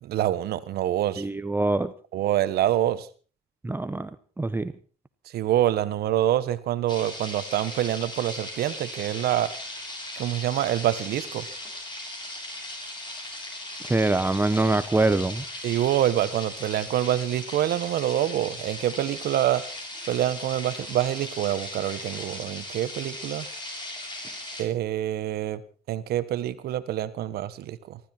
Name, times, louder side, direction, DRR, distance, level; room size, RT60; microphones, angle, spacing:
voice 1, 0.0-1.2 2.1-3.1 5.3-9.5 10.2-11.4 15.6-19.6 20.1-23.5 24.6-25.6 25.9-28.0, right 12 dB, 70° right, 13 dB, 1.3 m, -26 dB
voice 2, 1.2-1.9 3.6-4.1 4.4-4.7 13.8-15.4, right 2 dB, 10° right, 11 dB, 0.9 m, -24 dB
sound 1, 6.9-24.6, left 1 dB, 25° left, 7.0 m, -38 dB
24.5 x 13.0 x 4.4 m, 0.38 s
cardioid pair, 110°, 17 cm